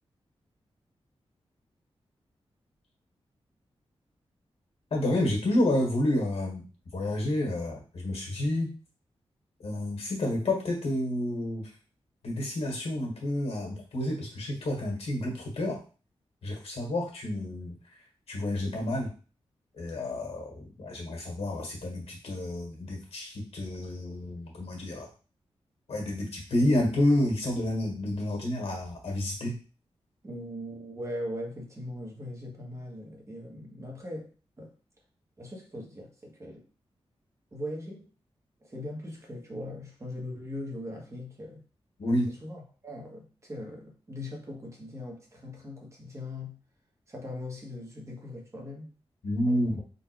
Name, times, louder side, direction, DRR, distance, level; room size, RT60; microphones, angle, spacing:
voice 1, 4.9-6.6 6.9-8.7 9.6-11.7 12.2-15.8 16.4-17.8 18.3-19.1 19.8-25.1 25.9-29.6 42.0-42.3 49.2-49.8, left 1 dB, 75° left, 0 dB, 1.7 m, -29 dB
voice 2, 30.2-34.7 35.4-36.7 37.5-38.1 38.6-41.6 42.3-46.6 47.1-48.9 49.5-49.8, left 1 dB, 30° right, 0 dB, 1.3 m, -40 dB
3.9 x 2.6 x 4.5 m, 0.35 s
wide cardioid pair, 125°, 10 cm